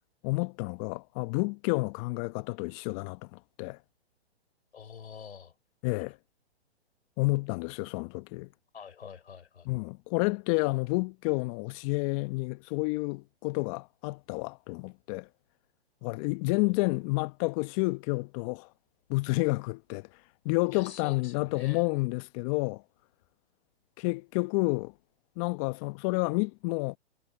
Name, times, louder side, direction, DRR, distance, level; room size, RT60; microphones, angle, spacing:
voice 1, 0.2-3.8 5.8-6.2 7.2-8.5 9.6-15.3 16.0-18.7 19.1-20.1 20.4-22.8 24.0-24.9 25.4-27.0, left 26 dB, 30° left, 1.2 m, -30 dB
voice 2, 4.7-5.5 8.7-9.7 16.6-16.9 20.7-21.9, left 7 dB, 75° left, 3.9 m, -46 dB
hypercardioid pair, 130°, 33 cm